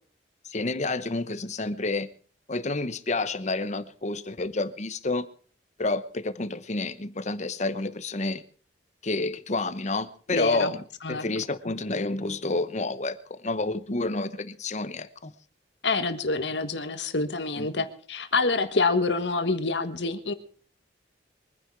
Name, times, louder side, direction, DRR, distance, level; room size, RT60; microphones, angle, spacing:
voice 1, 0.5-2.1 2.5-5.3 5.8-8.4 9.0-10.8 11.1-15.3 17.6-17.9, left 2 dB, 40° left, 1.0 m, -29 dB
voice 2, 10.3-10.7 11.0-11.3 11.6-11.8 15.8-20.3, left 3 dB, 75° left, 1.5 m, -27 dB
23.5 x 10.0 x 4.7 m
head